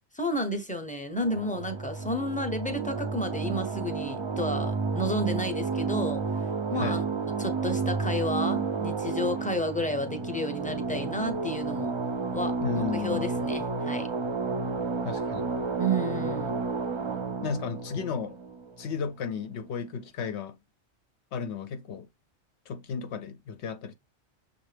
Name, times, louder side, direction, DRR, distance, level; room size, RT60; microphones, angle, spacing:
voice 1, 0.1-6.2 6.7-7.0 7.4-11.9 12.3-14.1 15.8-16.6, equal, 10° left, 0.6 m, -31 dB
sound 1, 1.2-19.3, right 4 dB, 40° right, 0.4 m, -31 dB
voice 2, 12.6-13.3 15.0-15.5 17.4-18.4 18.8-20.6 21.3-22.1 22.7-23.9, left 6 dB, 75° left, 0.8 m, -34 dB
6.3 x 2.6 x 3.2 m
omnidirectional pair, 1.2 m